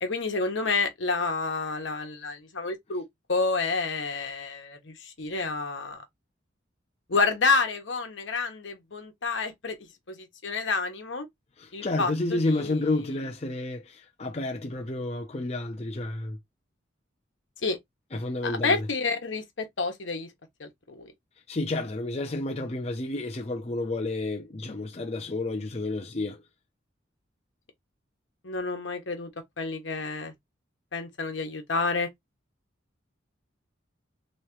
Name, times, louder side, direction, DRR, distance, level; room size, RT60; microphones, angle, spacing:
voice 1, 0.0-3.0 3.3-6.0 7.1-9.8 10.1-11.3 11.7-12.8 17.6-17.8 18.4-20.3 20.6-21.1 28.4-29.3 29.6-30.3 30.9-32.1, left 4 dB, 80° left, 1.1 m, -29 dB
voice 2, 11.6-16.4 18.1-18.9 21.5-26.4, left 2 dB, 35° left, 0.6 m, -30 dB
3.4 x 3.1 x 3.0 m
head